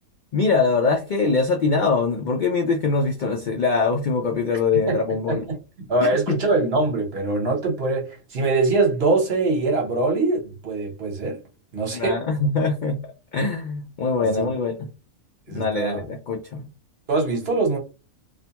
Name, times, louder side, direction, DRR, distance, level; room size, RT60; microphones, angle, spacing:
voice 1, 0.3-5.5 6.0-6.4 11.9-13.0 13.3-14.9 15.5-16.6, left 4 dB, 80° left, 0.4 m, -23 dB
voice 2, 5.3-11.4 11.7-12.2 14.2-14.5 15.5-16.0 17.1-17.8, right 3 dB, 55° right, 1.1 m, -23 dB
2.5 x 2.2 x 2.8 m
omnidirectional pair, 1.4 m